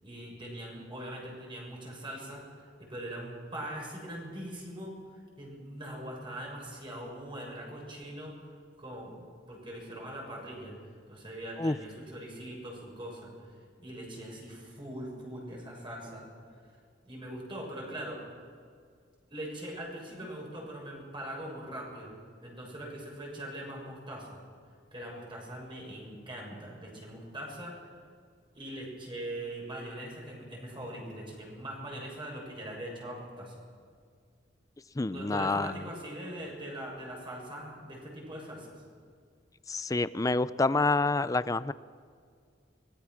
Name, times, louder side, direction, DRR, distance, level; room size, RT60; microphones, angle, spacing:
voice 1, 0.0-5.0 5.4-8.4 8.8-10.7 11.1-13.3 13.8-16.3 17.0-18.2 19.3-22.1 22.4-24.4 24.9-27.8 28.5-33.5 35.1-38.8, right 1 dB, 30° right, -2 dB, 6.9 m, -41 dB
voice 2, 35.0-35.7 39.7-41.7, left 3 dB, 20° left, 16 dB, 0.5 m, -27 dB
24.5 x 19.0 x 5.9 m, 2.1 s
head